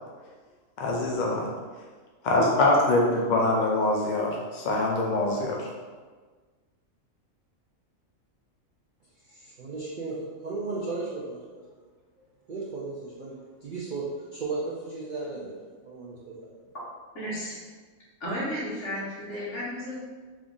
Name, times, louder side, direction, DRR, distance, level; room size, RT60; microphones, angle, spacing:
voice 1, 0.8-1.5 2.2-5.6, left 2 dB, 80° left, -2 dB, 0.4 m, -24 dB
voice 2, 9.3-11.6 12.5-16.6, right 3 dB, 60° right, -6 dB, 0.5 m, -35 dB
voice 3, 17.1-17.6 18.2-19.9, equal, 60° left, -8 dB, 1.5 m, -33 dB
3.6 x 2.5 x 3.6 m, 1.4 s
omnidirectional pair, 1.4 m